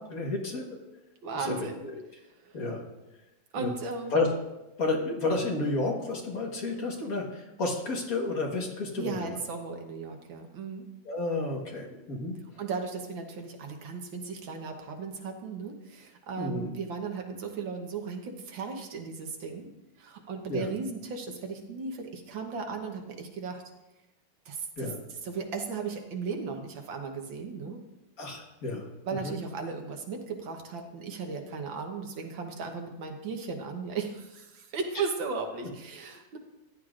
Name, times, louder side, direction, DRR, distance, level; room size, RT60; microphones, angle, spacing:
voice 1, 0.1-0.6 1.4-1.6 1.8-1.9 2.5-2.8 3.6-3.7 4.1-4.3 4.8-9.2 11.1-12.4 16.4-16.7 20.5-20.7 24.8-25.0 28.2-28.9 29.2-29.3, left 2 dB, 50° left, 0 dB, 1.8 m, -31 dB
voice 2, 1.2-1.9 2.4-2.6 3.5-4.2 9.0-10.9 12.6-19.7 20.0-23.6 24.5-24.9 25.2-27.8 29.1-36.4, right 4 dB, 85° right, 4 dB, 1.9 m, -36 dB
14.0 x 10.5 x 2.5 m, 0.98 s
omnidirectional pair, 2.0 m